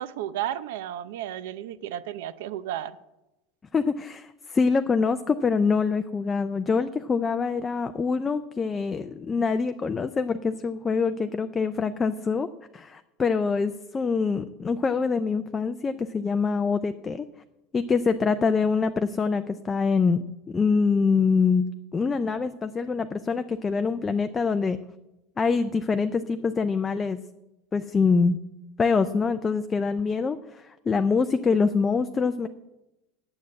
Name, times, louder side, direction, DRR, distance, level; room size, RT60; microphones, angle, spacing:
voice 1, 0.0-3.0, right 11 dB, 80° right, 0.6 m, -33 dB
voice 2, 3.7-12.5 12.7-17.3 17.7-21.7 21.9-24.8 25.4-27.2 27.7-28.4 28.8-32.5, left 5 dB, 15° left, 0.3 m, -25 dB
9.6 x 7.9 x 7.5 m
supercardioid pair, 165°, 0 cm